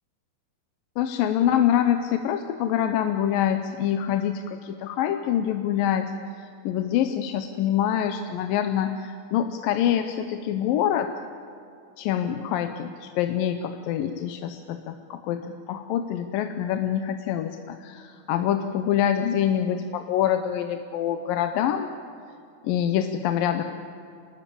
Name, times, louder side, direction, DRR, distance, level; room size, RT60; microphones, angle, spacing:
voice 1, 1.0-11.1 12.0-21.9 22.6-23.6, left 10 dB, 75° left, 7 dB, 2.5 m, -25 dB
26.0 x 20.0 x 8.6 m, 2.5 s
omnidirectional pair, 4.3 m